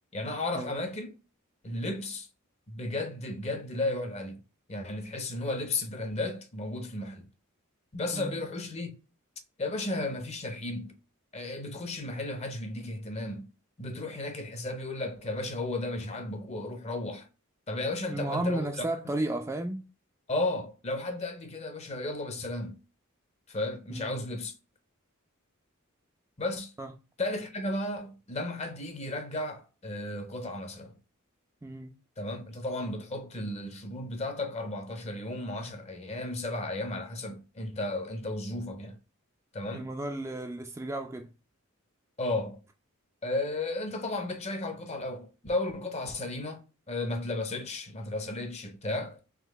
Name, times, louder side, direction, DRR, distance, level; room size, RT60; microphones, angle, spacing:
voice 1, 0.1-1.1 1.6-2.3 2.7-4.4 4.7-7.3 7.9-8.9 9.6-11.0 11.3-13.5 13.8-17.3 17.7-18.8 20.3-22.8 23.5-24.5 26.4-26.8 27.2-30.9 32.2-39.0 39.5-39.9 42.2-42.6 43.2-49.2, left 2 dB, 30° left, 0.6 m, -34 dB
voice 2, 18.1-19.8 23.9-24.2 26.8-26.9 31.6-31.9 39.7-41.3, right 1 dB, 15° right, 0.3 m, -33 dB
3.7 x 2.8 x 3.4 m
head